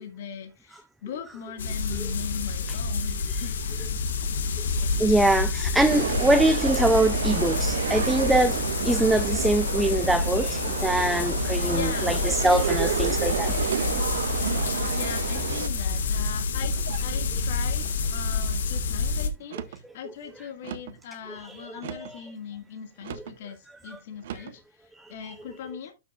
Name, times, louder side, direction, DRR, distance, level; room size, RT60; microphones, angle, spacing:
voice 1, 0.0-3.5 11.7-12.1 14.7-25.9, left 8 dB, 55° left, 1.7 m, -39 dB
sound 1, 1.6-19.3, left 4 dB, 80° left, 1.5 m, -28 dB
voice 2, 5.0-13.6 21.3-22.3 23.9-24.0 25.2-25.3, right 2 dB, 5° right, 0.4 m, -24 dB
sound 2, 5.9-15.7, right 9 dB, 80° right, 0.4 m, -30 dB
sound 3, 13.3-13.8 14.4-14.9 15.5-16.0 16.8-17.2 17.8-18.2 19.4-19.9 20.6-21.0 21.8-22.2 23.0-23.4 24.2-24.6, right 10 dB, 55° right, 0.9 m, -40 dB
12.0 x 6.1 x 2.4 m
hypercardioid pair, 165°, 0 cm